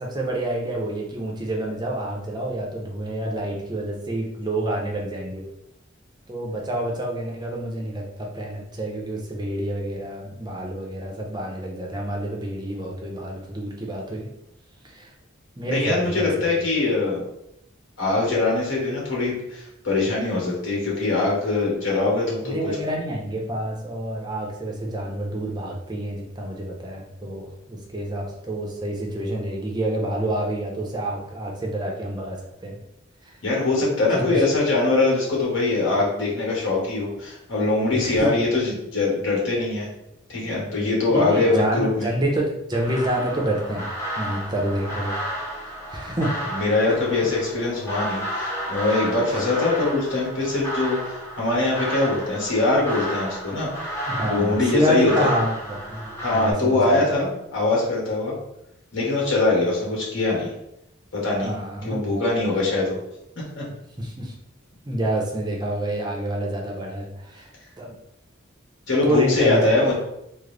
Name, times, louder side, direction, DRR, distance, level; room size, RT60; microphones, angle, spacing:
voice 1, 0.0-5.4 6.3-14.3 14.8-15.1 15.6-16.6 22.4-32.8 33.2-33.4 34.3-34.4 37.9-38.3 41.1-45.2 45.6-46.5 49.2-49.4 54.1-57.1 61.4-62.0 64.0-64.3 64.9-67.5 67.8-67.9 69.0-69.8, right 1 dB, 20° right, -1 dB, 0.6 m, -28 dB
voice 2, 15.7-17.2 18.0-22.7 33.4-39.9 40.3-42.1 46.5-53.9 54.2-55.3 56.2-58.3 58.9-60.5 61.1-61.5 61.8-63.0 63.4-63.6 68.9-69.9, left 2 dB, 65° left, -4 dB, 1.4 m, -22 dB
sound 1, 42.7-56.5, equal, 15° left, 0.8 m, -32 dB
3.7 x 2.0 x 3.3 m, 0.83 s
head